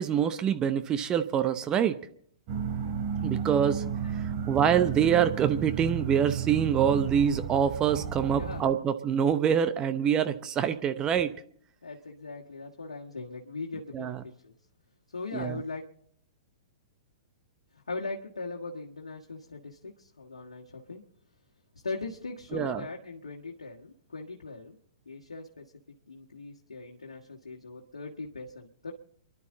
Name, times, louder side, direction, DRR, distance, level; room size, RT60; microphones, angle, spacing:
voice 1, 0.0-2.0 3.2-3.8 4.1-11.3 13.9-14.2 15.3-15.6 22.5-22.8, right 8 dB, 25° right, 10 dB, 0.8 m, -25 dB
sound 1, 2.5-8.6, right 7 dB, 40° right, 2.8 m, -33 dB
voice 2, 4.0-4.3 8.2-8.8 11.8-14.2 14.4-14.5 15.1-15.8 17.7-21.0 21.8-24.8 25.1-25.7 26.1-28.9, left 3 dB, 75° left, -1 dB, 1.7 m, -40 dB
28.5 x 11.5 x 3.8 m, 0.62 s
figure-of-eight pair, 110°, 3 cm